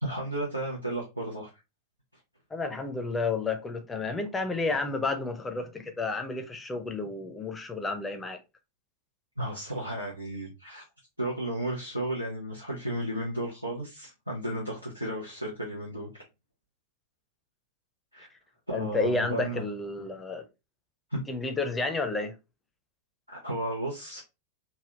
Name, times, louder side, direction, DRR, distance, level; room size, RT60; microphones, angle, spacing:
voice 1, 0.0-1.5 9.4-10.8 11.2-16.2 18.1-18.3 18.7-19.6 21.1-21.2 23.3-24.2, right 1 dB, 85° right, 0.8 m, -33 dB
voice 2, 2.5-8.4 18.7-20.4 21.3-22.4, left 3 dB, 15° left, 0.6 m, -31 dB
3.4 x 2.3 x 2.9 m
figure-of-eight pair, 90°, 0 cm